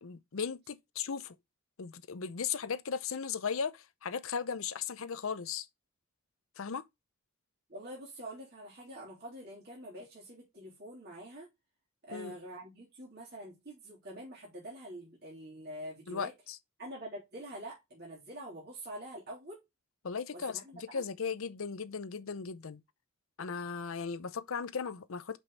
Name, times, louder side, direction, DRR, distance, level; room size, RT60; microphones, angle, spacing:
voice 1, 0.0-1.4 1.8-5.7 6.6-6.9 12.1-12.4 16.1-16.3 20.0-22.8 23.4-25.4, left 6 dB, 75° left, 0.6 m, -37 dB
voice 2, 7.7-11.5 12.0-16.3 16.8-19.6 20.3-21.0, right 1 dB, 45° right, 3.6 m, -46 dB
6.1 x 5.5 x 4.1 m
head